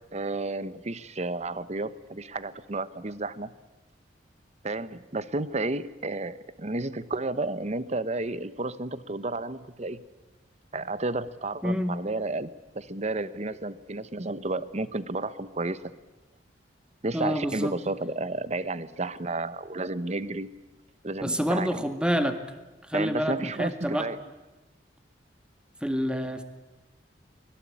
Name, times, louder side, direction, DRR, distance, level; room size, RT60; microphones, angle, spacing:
voice 1, 0.1-3.5 4.6-10.0 10.7-12.5 12.7-15.8 17.0-20.5 21.0-21.7 22.9-24.2, right 2 dB, 40° right, 15 dB, 1.0 m, -32 dB
voice 2, 11.6-12.0 17.1-17.8 21.2-22.4 22.9-24.1 25.8-26.4, equal, 5° right, 8 dB, 1.8 m, -27 dB
24.0 x 20.5 x 8.6 m, 1.1 s
head